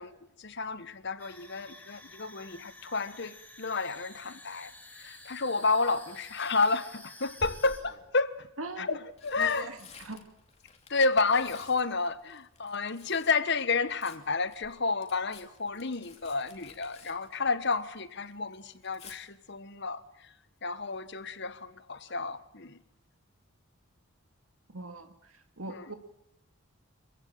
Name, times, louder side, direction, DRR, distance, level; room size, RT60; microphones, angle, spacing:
voice 1, 0.0-8.5 8.8-9.7 10.9-20.3 20.6-22.8 25.7-25.9, left 4 dB, 55° left, 1.3 m, -31 dB
sound 1, 1.2-7.8, left 2 dB, 5° left, 3.8 m, -51 dB
Tearing, 5.9-6.3 7.4-8.1 8.9-13.4 13.7-18.0 18.3-19.2 21.0-21.3 21.6-21.7, left 2 dB, 30° left, 2.7 m, -51 dB
voice 2, 8.6-9.0 9.4-10.2 24.7-25.9, right 2 dB, 80° right, 2.1 m, -41 dB
26.0 x 15.5 x 8.7 m
head